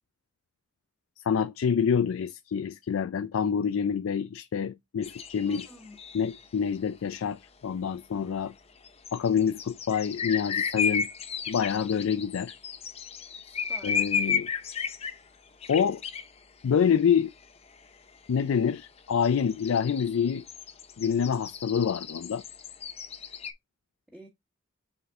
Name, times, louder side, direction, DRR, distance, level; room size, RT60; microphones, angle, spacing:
voice 1, 1.3-5.7 6.1-8.5 9.1-11.1 11.5-12.5 13.8-14.5 15.7-16.0 16.6-17.3 18.3-20.4 21.0-22.4, left 7 dB, 85° left, 0.4 m, -27 dB
sound 1, 5.0-6.5 8.8-15.2 15.6-16.3 17.4-17.5 17.7-17.8 18.1-18.2 18.7-23.5, left 6 dB, 30° left, 0.7 m, -34 dB
voice 2, 5.5-5.9 8.1-8.2 11.9-12.0 13.4-14.0 24.1-24.3, equal, 5° right, 1.3 m, -47 dB
6.7 x 4.1 x 3.5 m
head